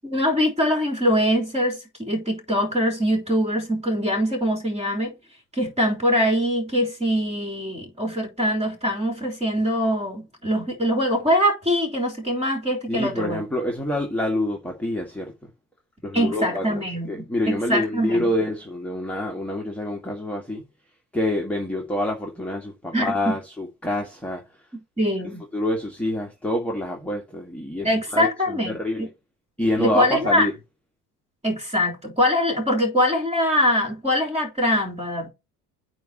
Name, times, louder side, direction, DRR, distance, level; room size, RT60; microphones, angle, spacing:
voice 1, 0.0-5.1 5.5-13.4 16.1-18.3 22.9-23.3 25.0-25.4 27.8-29.1 29.8-30.4 31.4-35.3, equal, 15° right, 3.5 m, -23 dB
voice 2, 12.9-15.5 16.0-20.6 21.1-24.4 25.5-29.1 29.6-30.5, left 1 dB, 5° left, 1.8 m, -27 dB
8.9 x 3.1 x 6.5 m
hypercardioid pair, 60°, 49 cm